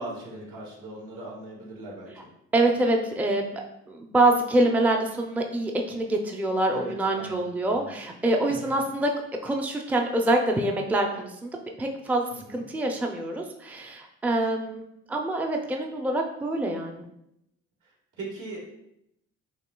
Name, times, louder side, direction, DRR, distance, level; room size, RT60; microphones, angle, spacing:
voice 1, 0.0-2.1 6.7-8.0 12.3-12.6 18.2-18.6, right 1 dB, 75° right, -3 dB, 1.6 m, -39 dB
voice 2, 2.5-3.6 3.9-9.1 9.4-11.5 11.8-17.0, right 1 dB, 5° right, 2 dB, 0.5 m, -25 dB
6.9 x 2.7 x 2.2 m, 0.78 s
cardioid pair, 90°, 30 cm